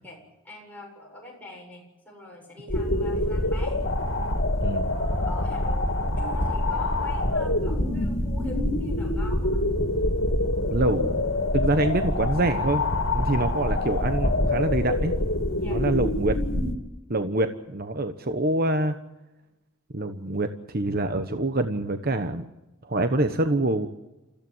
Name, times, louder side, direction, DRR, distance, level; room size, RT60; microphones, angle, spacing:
voice 1, 0.0-3.9 4.9-9.7 15.6-15.9, left 1 dB, 10° left, -1 dB, 7.6 m, -43 dB
sound 1, 2.7-16.7, left 1 dB, 65° left, 2.7 m, -25 dB
voice 2, 10.7-11.3 11.5-12.8 13.1-15.1 15.7-16.4 17.1-19.0 19.9-22.5 22.8-23.9, right 2 dB, 45° right, 8 dB, 1.1 m, -25 dB
29.0 x 15.5 x 8.1 m, 1.0 s
head